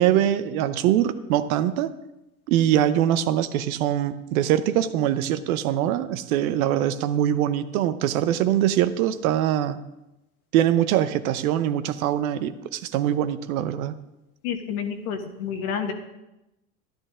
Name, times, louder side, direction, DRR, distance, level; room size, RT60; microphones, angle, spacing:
voice 1, 0.0-1.9 2.5-9.8 10.5-14.0, right 11 dB, 75° right, 12 dB, 0.9 m, -23 dB
voice 2, 14.4-15.9, left 7 dB, 75° left, 5 dB, 1.7 m, -29 dB
12.0 x 11.0 x 3.7 m, 0.95 s
hypercardioid pair, 85°, 43 cm